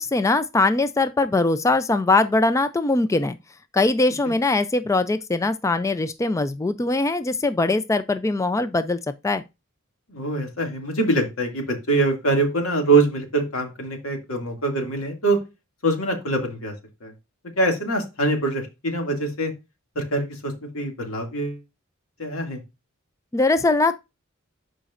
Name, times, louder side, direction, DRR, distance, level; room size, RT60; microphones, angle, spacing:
voice 1, 0.0-3.4 3.7-9.0 9.2-9.4 23.3-24.0, left 2 dB, 15° left, 0.3 m, -21 dB
voice 2, 10.1-15.4 15.8-16.7 17.0-17.1 17.6-19.5 20.0-21.6 22.2-22.6, right 2 dB, 85° left, 2.3 m, -24 dB
11.0 x 5.1 x 2.5 m
head